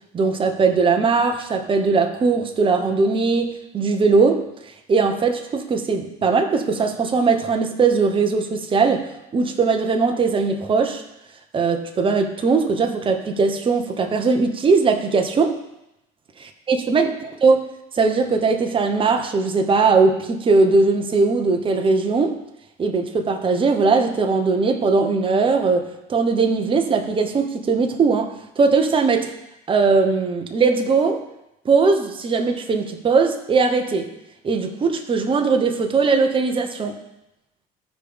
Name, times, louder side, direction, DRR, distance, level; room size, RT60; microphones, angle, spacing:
voice 1, 0.1-4.5 4.9-11.0 11.5-15.6 16.7-17.6 17.9-22.4 22.8-29.3 29.7-31.2 31.6-34.1 34.4-37.0, right 4 dB, 30° right, 5 dB, 1.0 m, -19 dB
14.0 x 5.1 x 3.5 m, 0.89 s
supercardioid pair, 105°, 18 cm